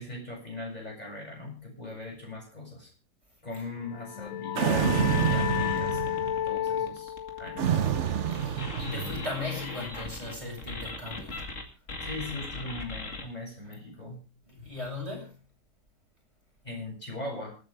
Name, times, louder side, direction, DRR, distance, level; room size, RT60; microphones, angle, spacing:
voice 1, 0.0-2.9 3.4-7.8 12.0-14.2 16.6-17.5, left 2 dB, 25° left, -1 dB, 7.8 m, -40 dB
sound 1, 3.8-9.2, left 11 dB, 65° left, 1.2 m, -33 dB
sound 2, 4.6-6.4 7.6-9.4, right 9 dB, 55° right, 1.0 m, -28 dB
sound 3, 4.9-11.6 11.9-13.2, left 3 dB, 50° left, 2.7 m, -39 dB
voice 2, 8.3-11.4 14.5-15.4, left 2 dB, 20° right, -1 dB, 7.0 m, -38 dB
27.0 x 9.3 x 3.6 m, 0.36 s
omnidirectional pair, 1.8 m